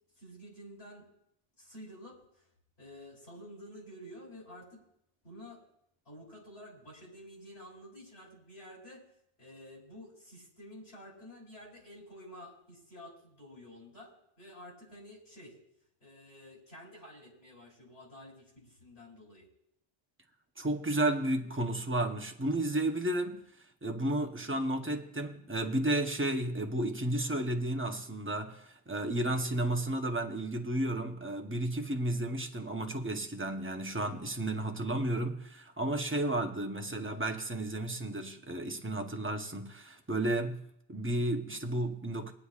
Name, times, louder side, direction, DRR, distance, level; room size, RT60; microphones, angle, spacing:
voice 1, 0.2-1.1 1.6-2.5 2.8-4.8 5.2-5.6 6.0-9.1 9.4-15.6 16.0-19.5, equal, 65° left, 3.4 m, -50 dB
voice 2, 20.6-23.4 23.8-40.6 40.9-42.3, right 1 dB, 15° right, 0.7 m, -32 dB
20.0 x 9.8 x 2.4 m
omnidirectional pair, 1.1 m